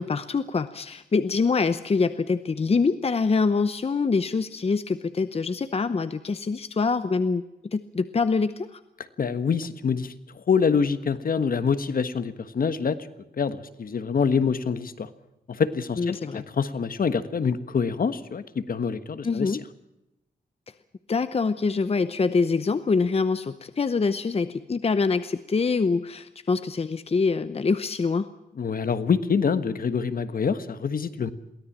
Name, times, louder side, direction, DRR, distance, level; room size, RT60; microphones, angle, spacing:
voice 1, 0.0-7.4 7.7-8.8 16.0-16.4 19.2-19.6 21.1-28.3, left 4 dB, 35° left, 12 dB, 0.8 m, -25 dB
voice 2, 9.2-10.1 10.5-13.0 13.4-15.1 15.5-16.2 16.6-19.5 28.6-31.3, left 6 dB, 60° left, 11 dB, 1.4 m, -25 dB
23.0 x 17.5 x 7.4 m, 0.91 s
wide cardioid pair, 115°, 17 cm